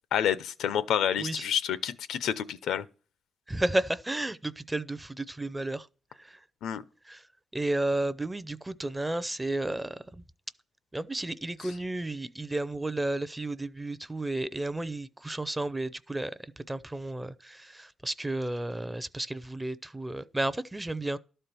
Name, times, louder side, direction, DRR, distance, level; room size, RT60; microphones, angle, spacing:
voice 1, 0.1-2.8 6.6-6.8, left 9 dB, 85° left, 0.6 m, -28 dB
voice 2, 3.5-5.9 6.1-6.4 7.0-7.3 7.5-10.2 10.9-21.2, right 2 dB, 10° right, 0.5 m, -32 dB
12.5 x 4.4 x 6.7 m
cardioid pair, 125°, 0 cm